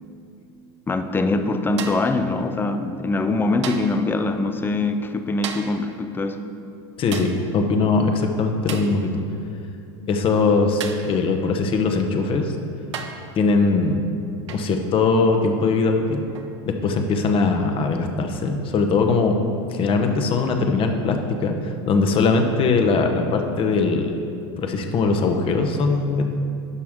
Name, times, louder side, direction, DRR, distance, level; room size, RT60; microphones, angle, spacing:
voice 1, 0.9-6.4, left 2 dB, 15° left, 8 dB, 0.5 m, -23 dB
sound 1, 1.8-2.2 3.6-4.0 5.4-5.8 7.1-7.4 8.7-9.0 10.8-11.2 12.2-12.3 12.9-13.3 14.5-14.7 16.4-16.6, right 6 dB, 90° right, 0.7 m, -34 dB
voice 2, 7.0-9.2 10.1-12.5 13.4-14.0 14.5-16.2 16.7-19.3 19.7-24.1 24.6-26.2, left 4 dB, 40° left, 4 dB, 1.0 m, -21 dB
11.0 x 5.9 x 3.7 m, 2.6 s
hypercardioid pair, 105°, 14 cm